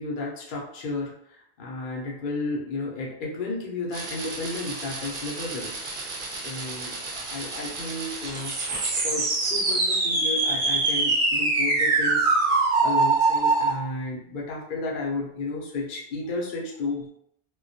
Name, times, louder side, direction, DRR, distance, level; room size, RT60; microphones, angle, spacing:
voice 1, 0.0-5.7 6.3-8.6 9.0-17.1, left 3 dB, 55° left, -3 dB, 0.7 m, -33 dB
sound 1, 3.9-13.7, right 3 dB, 60° right, 0.7 m, -25 dB
2.2 x 2.2 x 2.6 m, 0.72 s
omnidirectional pair, 1.1 m